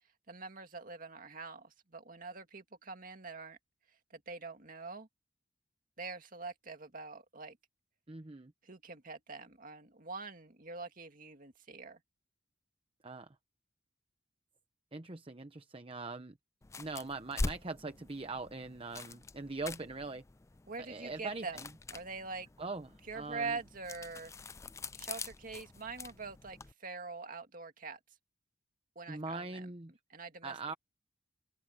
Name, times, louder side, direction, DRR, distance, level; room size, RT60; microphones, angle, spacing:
voice 1, 0.3-3.6 4.1-5.1 6.0-7.6 8.6-12.0 20.7-21.6 21.9-22.5 23.1-24.3 25.0-28.0 29.0-29.7 30.1-30.8, right 4 dB, 45° right, 2.2 m, -44 dB
voice 2, 8.1-8.5 13.0-13.3 14.9-16.4 16.8-20.2 20.9-21.7 22.6-22.9 23.1-23.6 29.1-29.9 30.4-30.7, right 3 dB, 30° right, 0.9 m, -42 dB
sound 1, 16.6-26.7, left 3 dB, 15° left, 0.3 m, -44 dB
open air
head